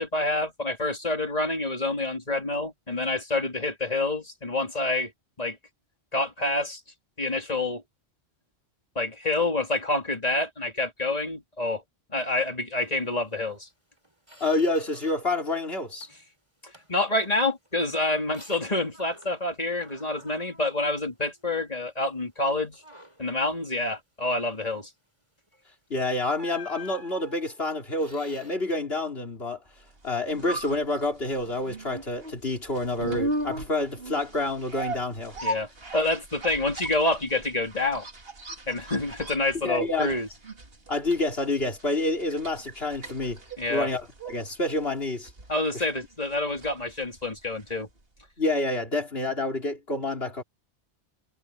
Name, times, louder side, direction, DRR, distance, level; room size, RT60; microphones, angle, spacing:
voice 1, 0.0-5.1 5.4-5.6 6.1-6.8 7.2-7.8 8.9-11.8 12.1-13.7 16.9-22.8 23.2-24.9 35.4-38.1 38.7-40.3 43.6-43.9 45.5-47.9, left 2 dB, 35° left, 3.3 m, -27 dB
Squeak, 13.5-13.6 14.0-15.4 15.7-16.3 16.7-19.5 19.8-21.7 22.1-22.3 22.7-23.4 25.5-25.7 26.4-28.6, left 1 dB, 25° right, 5.3 m, -50 dB
voice 2, 14.4-16.1 25.9-29.6 30.0-35.3 39.6-40.1 40.9-43.4 43.7-45.3 45.7-45.9 48.4-50.4, left 2 dB, 65° left, 3.7 m, -28 dB
sound 1, 29.9-47.9 48.2-48.3, right 2 dB, 60° right, 2.9 m, -38 dB
omnidirectional pair, 1.1 m